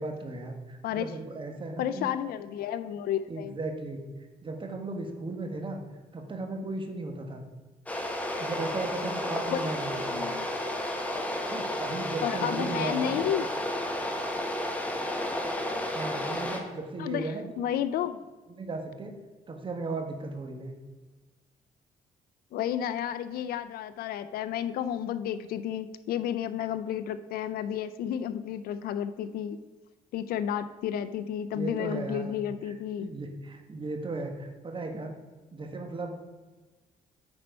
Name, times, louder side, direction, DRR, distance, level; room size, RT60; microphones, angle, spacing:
voice 1, 0.0-2.1 3.3-4.0 4.4-5.8 6.1-7.5 8.4-10.2 11.5-13.2 15.9-17.5 18.5-19.2 19.5-20.7 31.5-32.3 32.6-35.1 35.5-36.1, right 3 dB, 35° right, 3 dB, 1.3 m, -36 dB
voice 2, 1.8-3.5 9.5-9.7 10.1-10.5 12.2-13.5 17.0-18.2 22.5-29.6 30.1-33.1, left 10 dB, 80° left, 12 dB, 0.4 m, -31 dB
sound 1, 7.9-16.6, left 1 dB, 10° left, 1.1 m, -32 dB
8.7 x 4.4 x 5.2 m, 1.3 s
cardioid pair, 100°, 15 cm